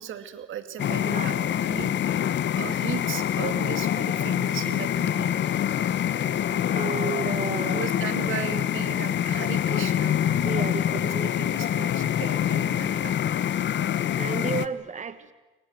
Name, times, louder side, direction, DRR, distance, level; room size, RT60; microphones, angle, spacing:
voice 1, 0.0-2.2 2.6-5.3 7.2-7.3 7.7-10.2 10.6-13.3, right 10 dB, 80° right, 10 dB, 2.5 m, -37 dB
sound 1, 0.8-14.7, left 10 dB, 65° left, 1.2 m, -25 dB
voice 2, 1.0-1.3 6.7-7.9 10.4-11.3 14.2-15.3, right 5 dB, 35° right, 12 dB, 1.4 m, -32 dB
28.5 x 25.0 x 7.9 m, 1.2 s
cardioid pair, 100°, 20 cm